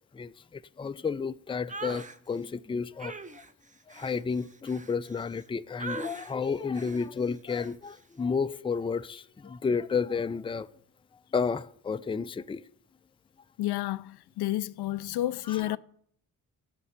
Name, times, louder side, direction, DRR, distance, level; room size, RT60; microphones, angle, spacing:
voice 1, 0.0-3.1 3.9-10.7 11.3-12.6 15.5-15.8, left 5 dB, 15° left, 0.4 m, -31 dB
sound 1, 1.7-2.2 3.0-5.4 5.8-6.3 6.7-7.1 7.5-7.7, right 3 dB, 20° right, 0.8 m, -41 dB
voice 2, 13.6-15.8, left 15 dB, 80° left, 0.5 m, -30 dB
13.0 x 5.3 x 8.2 m
cardioid pair, 65°, 39 cm